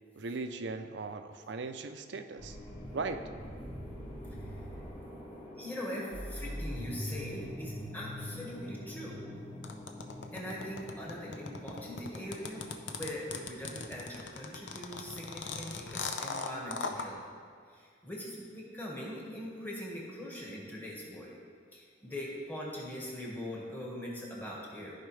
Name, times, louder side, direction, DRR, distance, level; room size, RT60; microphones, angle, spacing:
voice 1, 0.2-2.6 2.9-3.2, right 3 dB, 65° right, 8 dB, 0.5 m, -38 dB
sound 1, 2.4-12.8, left 1 dB, 35° left, 2.1 m, -43 dB
voice 2, 5.6-9.2 10.3-17.2 17.7-21.3 21.7-25.0, equal, 10° left, -4 dB, 1.6 m, -42 dB
sound 2, 9.6-17.1, left 4 dB, 75° left, 0.7 m, -38 dB
14.5 x 5.0 x 3.3 m, 2.1 s
head